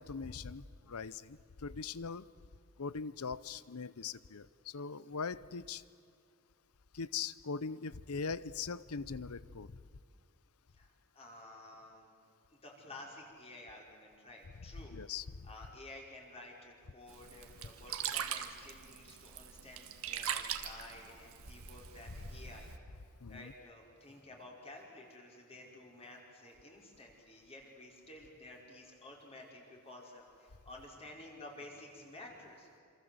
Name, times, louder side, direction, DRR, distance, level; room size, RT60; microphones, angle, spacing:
voice 1, 0.0-2.3 2.8-5.8 6.9-9.7 14.9-15.5 23.2-23.5, left 5 dB, 80° left, 18 dB, 0.8 m, -41 dB
voice 2, 10.7-12.1 12.6-14.9 15.4-22.7 23.3-32.7, left 2 dB, 30° left, -1 dB, 5.3 m, -52 dB
Sink (filling or washing), 17.1-22.8, right 8 dB, 70° right, 1.7 m, -42 dB
27.5 x 27.0 x 8.0 m, 2.4 s
head